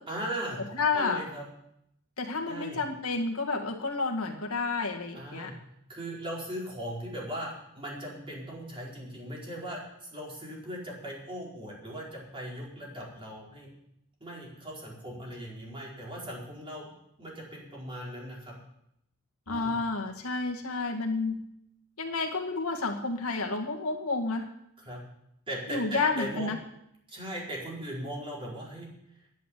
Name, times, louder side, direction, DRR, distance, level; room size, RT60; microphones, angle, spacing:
voice 1, 0.1-0.6 0.9-1.5 2.4-2.8 5.1-5.5 5.9-13.7 14.2-16.9 17.2-18.5 19.5-19.8 24.8-25.0 25.5-26.5 27.1-28.9, right 1 dB, 25° right, -3 dB, 4.5 m, -38 dB
voice 2, 0.7-1.2 2.2-5.5 19.5-21.4 22.0-24.5 25.7-26.6, left 3 dB, 80° left, 2 dB, 1.9 m, -30 dB
10.0 x 9.3 x 10.0 m, 0.77 s
head